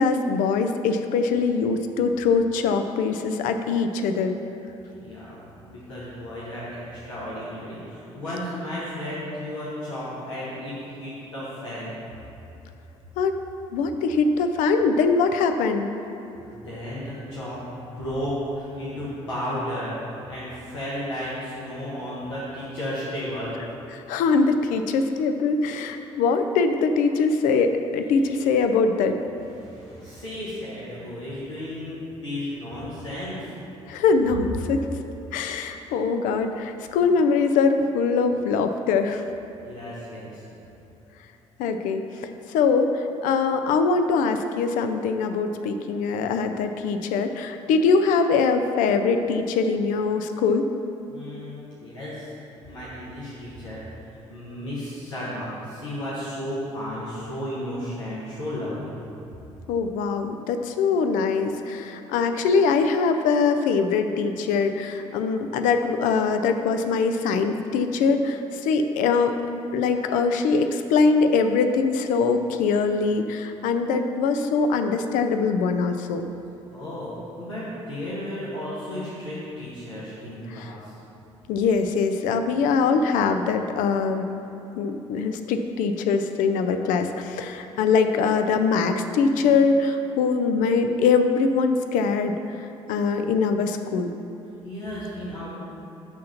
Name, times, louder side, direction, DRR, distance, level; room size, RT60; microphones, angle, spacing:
voice 1, 0.0-4.4 13.2-13.4 13.7-15.9 23.9-29.2 33.9-34.8 35.3-39.2 41.6-50.6 59.7-69.4 69.7-76.2 80.5-80.7 81.5-84.3 84.8-94.1, left 4 dB, 60° left, 7 dB, 0.6 m, -22 dB
voice 2, 5.0-11.9 16.4-20.0 20.3-23.5 28.1-28.2 29.5-33.5 39.6-40.4 51.1-58.9 76.7-81.0 94.6-95.5, left 1 dB, 80° left, -10 dB, 1.4 m, -34 dB
11.0 x 3.8 x 5.7 m, 3.0 s
figure-of-eight pair, 50°, 15 cm